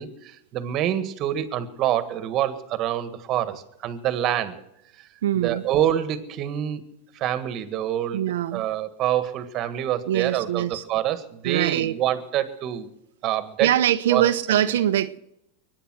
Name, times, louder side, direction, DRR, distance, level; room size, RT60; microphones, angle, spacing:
voice 1, 0.0-4.6 5.3-6.9 7.1-12.9 13.2-13.7 14.1-14.7, right 11 dB, 40° right, 12 dB, 1.7 m, -26 dB
voice 2, 5.2-5.6 8.1-8.6 10.1-10.8 11.4-11.9 13.6-15.2, right 11 dB, 85° right, 7 dB, 0.8 m, -23 dB
22.5 x 10.0 x 6.3 m, 0.86 s
supercardioid pair, 135°, 0 cm